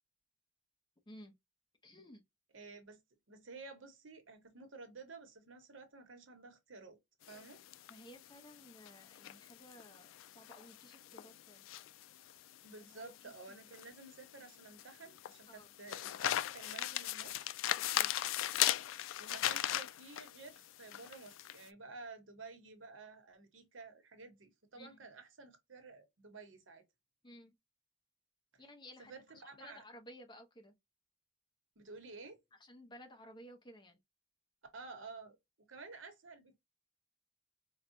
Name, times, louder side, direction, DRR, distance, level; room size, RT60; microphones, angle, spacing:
voice 1, 1.8-2.2 7.9-11.7 12.9-13.6 15.5-15.7 17.9-18.1 24.7-25.0 27.2-27.5 28.6-29.1 29.6-30.7 32.6-34.0, equal, 25° left, 0.8 m, -56 dB
voice 2, 2.5-3.0 3.3-7.0 7.3-7.6 12.6-17.5 19.2-26.8 28.5-28.6 29.0-29.8 31.8-32.4 34.7-36.6, right 3 dB, 85° right, 1.0 m, -52 dB
sound 1, 7.2-21.6, left 13 dB, 90° left, 0.3 m, -38 dB
4.6 x 2.2 x 2.6 m
head